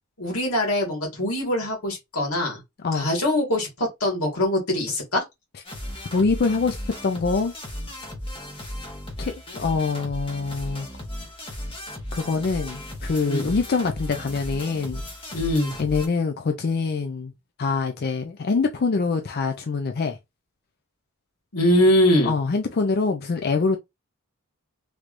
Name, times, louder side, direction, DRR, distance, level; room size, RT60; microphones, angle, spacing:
voice 1, 0.2-2.6 2.9-5.2 13.3-13.6 15.3-15.7 21.5-22.3, left 1 dB, 90° left, 1.8 m, -22 dB
sound 1, 5.6-16.1, left 1 dB, 25° left, 1.0 m, -35 dB
voice 2, 6.1-6.8 7.0-7.5 9.2-10.9 12.1-15.0 15.8-17.3 17.6-20.2 22.3-23.8, left 4 dB, 50° left, 0.4 m, -24 dB
3.3 x 3.1 x 2.5 m
head